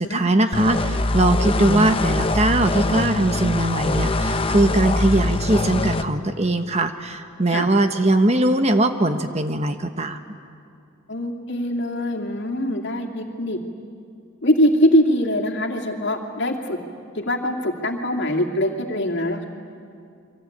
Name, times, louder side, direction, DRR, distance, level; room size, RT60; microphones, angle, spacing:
voice 1, 0.0-10.2, right 2 dB, 30° right, 8 dB, 1.1 m, -20 dB
sound 1, 0.5-6.0, left 2 dB, 25° left, 0.8 m, -23 dB
voice 2, 11.1-13.6 14.4-16.8 17.2-19.5, equal, 55° left, 2 dB, 2.5 m, -22 dB
28.5 x 24.0 x 8.8 m, 2.4 s
head